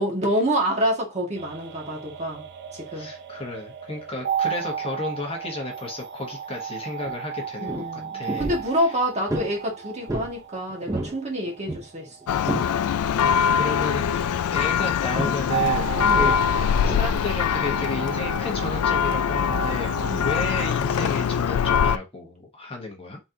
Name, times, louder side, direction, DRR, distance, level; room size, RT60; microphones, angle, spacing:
voice 1, 0.0-2.4 2.7-3.1 7.6-12.4 16.0-16.3 20.1-20.3, equal, 30° right, 1.6 m, -27 dB
sound 1, 1.4-14.7 15.5-20.7, right 8 dB, 55° right, 0.6 m, -34 dB
voice 2, 2.9-8.5 8.8-8.9 13.5-15.9 16.2-23.2, left 2 dB, 25° left, 1.0 m, -33 dB
sound 2, 7.0-7.1 7.4-7.9 8.3-8.7 9.3-9.5 10.1-10.3 10.7-11.2 11.5-12.7 13.2-13.4 15.1-15.5 16.0-17.0 17.7-17.8, right 1 dB, 15° right, 0.6 m, -31 dB
Church bell, 12.3-22.0, left 7 dB, 90° left, 0.3 m, -23 dB
4.1 x 3.7 x 2.7 m
head